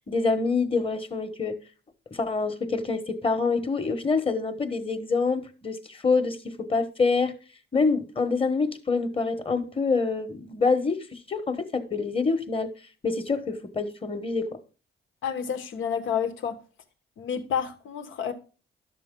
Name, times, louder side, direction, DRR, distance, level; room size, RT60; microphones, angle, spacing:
voice 1, 0.1-1.6 2.1-7.3 7.7-12.7 13.0-14.6, left 4 dB, 30° left, 1.3 m, -26 dB
voice 2, 15.2-16.6 17.2-18.3, left 7 dB, 80° left, 1.3 m, -29 dB
11.0 x 6.9 x 3.7 m
cardioid pair, 90°, 20 cm